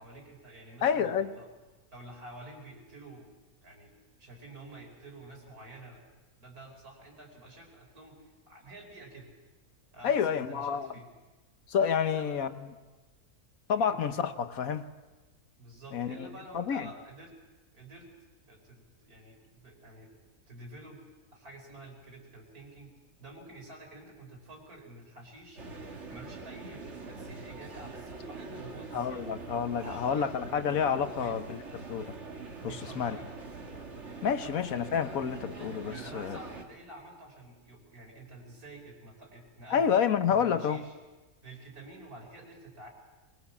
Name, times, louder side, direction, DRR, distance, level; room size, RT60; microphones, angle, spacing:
voice 1, 0.0-1.5 1.9-6.1 6.4-9.3 9.9-11.1 12.0-12.4 13.7-14.3 15.6-17.3 17.7-18.1 18.5-20.1 20.5-21.0 21.3-22.9 23.2-25.6 26.1-29.2 29.8-30.3 31.0-31.4 32.6-33.3 34.4-34.5 35.9-39.8 40.3-40.9 41.4-42.9, right 2 dB, 80° right, 1 dB, 5.1 m, -49 dB
voice 2, 0.8-1.3 10.0-10.9 11.7-12.5 13.7-14.9 15.9-16.3 16.5-16.9 28.9-31.6 31.9-32.1 32.6-33.2 34.2-36.4 39.7-40.8, left 7 dB, 70° left, 10 dB, 1.4 m, -29 dB
sound 1, 25.6-36.6, right 3 dB, 50° right, 2.1 m, -43 dB
23.0 x 21.5 x 7.2 m, 1.2 s
omnidirectional pair, 1.6 m